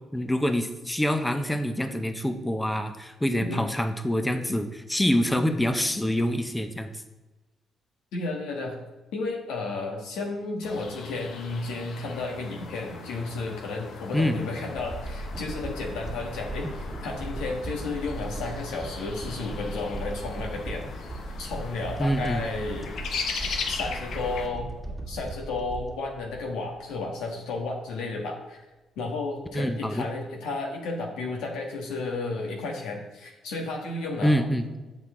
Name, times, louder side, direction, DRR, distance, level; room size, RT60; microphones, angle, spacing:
voice 1, 0.1-6.9 14.1-14.4 22.0-22.5 29.5-30.1 34.2-34.7, equal, 10° left, 7 dB, 0.7 m, -26 dB
voice 2, 8.1-8.8 9.1-21.1 21.4-22.9 23.7-24.7 25.1-28.6 29.0-34.4, left 3 dB, 90° left, 1 dB, 1.5 m, -33 dB
sound 1, 10.6-24.5, left 5 dB, 70° left, 0.9 m, -39 dB
sound 2, 14.8-27.1 27.6-27.7, right 2 dB, 5° right, 1.9 m, -37 dB
7.8 x 6.0 x 3.8 m, 1.1 s
cardioid pair, 90°, 0 cm